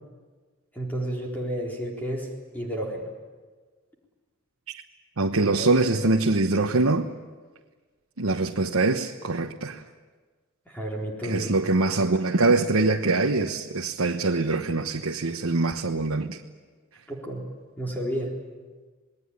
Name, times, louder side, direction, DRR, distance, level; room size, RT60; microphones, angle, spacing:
voice 1, 0.7-3.1 5.4-6.0 10.7-11.5 17.1-17.4 17.8-18.4, right 1 dB, 10° left, 4.0 m, -31 dB
voice 2, 5.2-7.1 8.2-9.8 11.2-16.4, right 3 dB, 90° right, 1.2 m, -24 dB
27.5 x 20.5 x 9.9 m
head